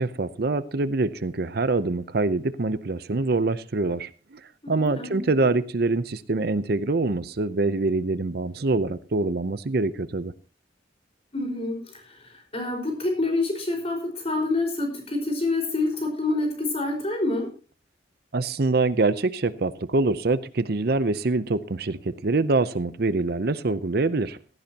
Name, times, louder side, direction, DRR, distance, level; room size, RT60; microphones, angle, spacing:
voice 1, 0.0-4.4 4.7-10.3 18.3-24.4, right 3 dB, 55° right, 0.6 m, -25 dB
voice 2, 4.6-5.5 11.3-17.5, left 2 dB, 30° left, 4.9 m, -27 dB
17.0 x 15.0 x 2.9 m
head